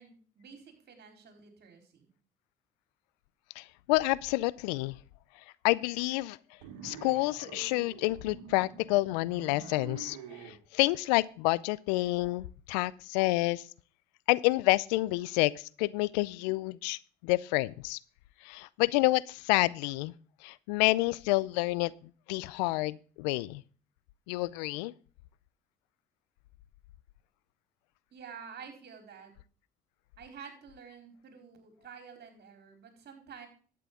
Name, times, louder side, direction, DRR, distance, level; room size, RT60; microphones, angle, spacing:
voice 1, 0.0-2.1 28.1-29.3 30.2-33.5, right 6 dB, 50° right, 5 dB, 4.2 m, -49 dB
voice 2, 3.6-5.0 5.6-6.4 6.8-10.2 10.4-13.7 14.3-18.0 18.4-20.1 20.4-21.9 22.3-23.6 24.3-24.9, left 20 dB, 80° left, 21 dB, 0.5 m, -29 dB
sound 1, 6.6-10.6, right 7 dB, 85° right, 1.8 m, -47 dB
11.5 x 9.2 x 3.7 m, 0.41 s
hypercardioid pair, 60°, 21 cm